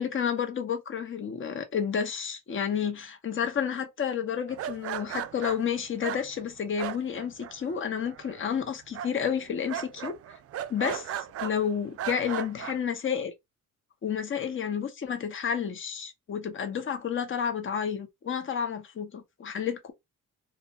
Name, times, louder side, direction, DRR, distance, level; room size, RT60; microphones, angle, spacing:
voice 1, 0.0-10.2 10.7-13.3 14.0-19.9, left 7 dB, 40° left, 0.9 m, -31 dB
sound 1, 4.5-7.8 8.0-8.6 8.9-11.6 12.0-12.8, right 10 dB, 50° right, 0.4 m, -36 dB
2.7 x 2.5 x 4.1 m
cardioid pair, 90°, 30 cm